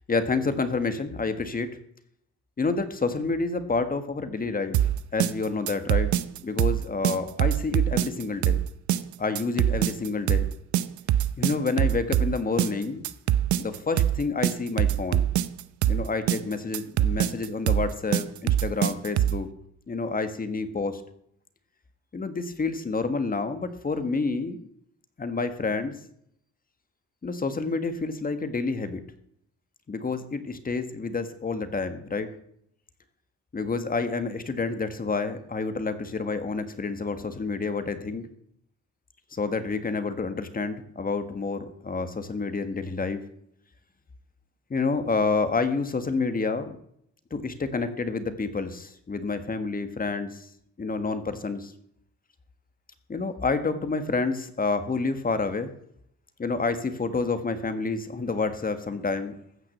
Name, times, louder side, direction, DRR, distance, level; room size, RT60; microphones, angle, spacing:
voice 1, 0.1-1.7 2.6-4.8 5.1-6.1 6.4-8.6 9.2-10.5 11.4-13.0 13.6-15.2 15.9-19.5 19.9-21.0 22.1-24.7 25.2-25.9 27.2-29.0 29.9-32.3 33.5-38.3 39.3-43.2 44.7-46.8 47.3-50.5 50.8-51.7 53.1-55.7 56.4-59.3, left 4 dB, 30° left, 9 dB, 1.6 m, -29 dB
sound 1, 4.7-19.4, right 11 dB, 75° right, 0.7 m, -24 dB
15.0 x 6.0 x 7.9 m, 0.70 s
cardioid pair, 90°, 30 cm